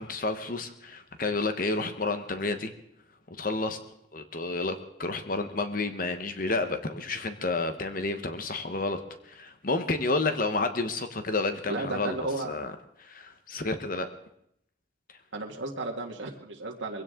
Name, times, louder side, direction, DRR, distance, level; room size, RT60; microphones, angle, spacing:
voice 1, 0.0-2.7 3.3-3.8 4.1-12.2 12.4-12.7 13.0-14.1, left 3 dB, 45° left, 8 dB, 1.1 m, -30 dB
voice 2, 11.7-12.6 15.3-17.0, right 2 dB, 80° right, 0 dB, 1.7 m, -33 dB
22.0 x 16.5 x 3.8 m, 0.75 s
head